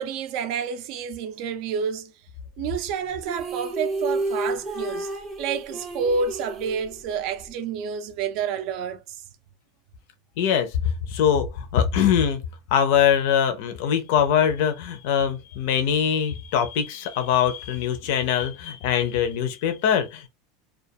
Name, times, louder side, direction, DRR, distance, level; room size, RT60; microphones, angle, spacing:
voice 1, 0.0-2.1 2.6-5.1 5.4-9.2 18.0-18.1, right 6 dB, 45° right, 0.4 m, -29 dB
sound 1, 3.2-7.5, right 2 dB, 15° right, 0.7 m, -31 dB
voice 2, 10.4-10.7 11.1-12.4 12.7-20.3, left 8 dB, 60° left, 0.5 m, -22 dB
2.3 x 2.3 x 2.7 m
supercardioid pair, 165°, 0 cm